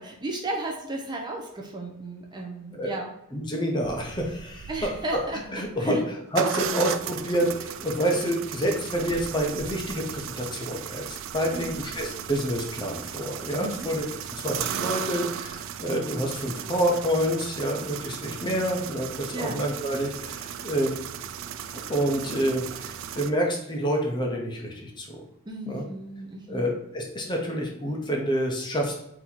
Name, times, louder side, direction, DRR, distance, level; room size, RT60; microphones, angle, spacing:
voice 1, 0.0-3.1 4.7-5.4 5.8-6.0 11.5-11.8 13.6-13.9 19.3-19.6 25.5-26.7, right 2 dB, 20° right, 0 dB, 0.6 m, -34 dB
voice 2, 3.3-4.7 5.5-11.1 11.3-14.0 14.3-20.9 21.7-25.2 25.7-25.8 26.5-28.9, equal, 20° left, 0 dB, 0.8 m, -28 dB
sound 1, 3.8-5.7 6.4-23.3, right 9 dB, 65° right, 0.3 m, -36 dB
4.0 x 2.9 x 4.4 m, 0.80 s
head